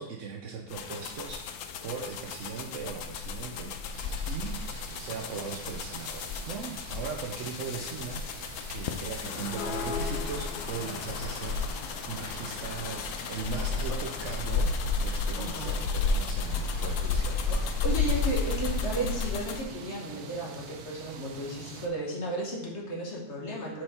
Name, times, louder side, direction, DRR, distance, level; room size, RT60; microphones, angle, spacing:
voice 1, 0.0-3.7 4.3-4.6 5.0-11.7 12.1-14.7 15.0-17.4, right 6 dB, 65° right, 1 dB, 0.9 m, -39 dB
sound 1, 0.7-19.6, left 4 dB, 70° left, 0.9 m, -32 dB
sound 2, 3.9-21.9, right 6 dB, 80° right, 1.2 m, -46 dB
sound 3, 9.2-19.3, left 5 dB, 90° left, 1.2 m, -42 dB
voice 2, 15.4-15.8 17.5-23.8, right 1 dB, 50° left, -2 dB, 1.5 m, -34 dB
6.0 x 4.8 x 4.3 m, 1.0 s
omnidirectional pair, 1.6 m